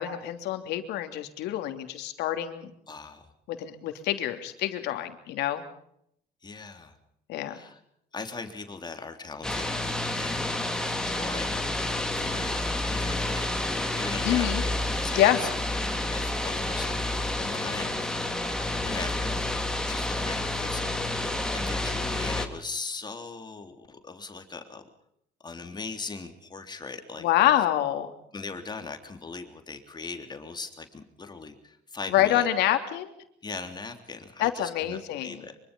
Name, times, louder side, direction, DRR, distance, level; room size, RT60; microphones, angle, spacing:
voice 1, 0.0-2.7 3.5-5.6 7.3-7.6 14.2-14.6 15.1-15.4 27.2-28.1 32.1-33.1 34.4-35.5, left 13 dB, 85° left, 7 dB, 3.1 m, -26 dB
voice 2, 2.9-3.3 6.4-7.0 7.5-7.8 8.1-9.8 10.1-10.5 11.0-13.7 14.0-14.7 15.0-15.5 15.8-18.2 18.6-19.5 19.9-24.8 25.4-27.3 28.3-32.5 33.4-35.7, left 4 dB, 25° left, 6 dB, 3.4 m, -40 dB
sound 1, 9.4-22.5, left 2 dB, 5° left, 3.2 m, -29 dB
25.0 x 24.5 x 5.4 m, 0.72 s
cardioid pair, 110°, 17 cm